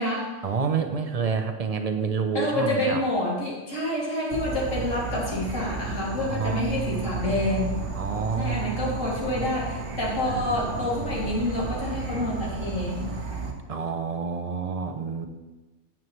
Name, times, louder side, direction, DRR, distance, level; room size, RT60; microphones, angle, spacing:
voice 1, 0.4-3.0 6.2-9.0 10.2-11.1 13.7-15.3, right 5 dB, 40° right, 6 dB, 0.7 m, -29 dB
voice 2, 2.3-7.8 8.4-13.2, left 1 dB, 85° left, -5 dB, 2.9 m, -28 dB
Insect / Frog, 4.3-13.5, right 4 dB, 65° right, 1.3 m, -33 dB
9.2 x 9.1 x 3.2 m, 1.2 s
omnidirectional pair, 1.3 m